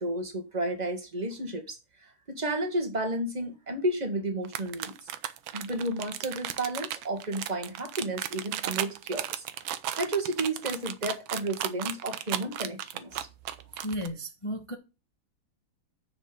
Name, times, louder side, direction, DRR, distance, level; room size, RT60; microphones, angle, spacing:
voice 1, 0.0-5.1 5.5-9.4 10.0-13.3, right 1 dB, 20° right, 1.8 m, -32 dB
sound 1, 4.4-14.1, right 11 dB, 75° right, 1.6 m, -34 dB
voice 2, 13.8-14.8, equal, 20° left, 1.1 m, -34 dB
7.0 x 6.6 x 7.0 m
omnidirectional pair, 2.2 m